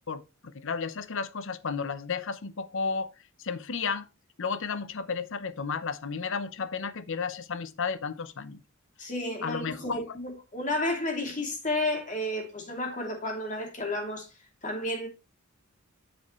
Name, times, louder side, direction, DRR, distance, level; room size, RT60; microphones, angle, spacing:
voice 1, 0.0-3.1 3.4-4.1 4.4-8.6 9.4-10.2, left 5 dB, 65° left, 0.7 m, -33 dB
voice 2, 9.0-14.2 14.6-15.1, left 1 dB, 35° left, 2.8 m, -32 dB
8.6 x 7.1 x 3.1 m
head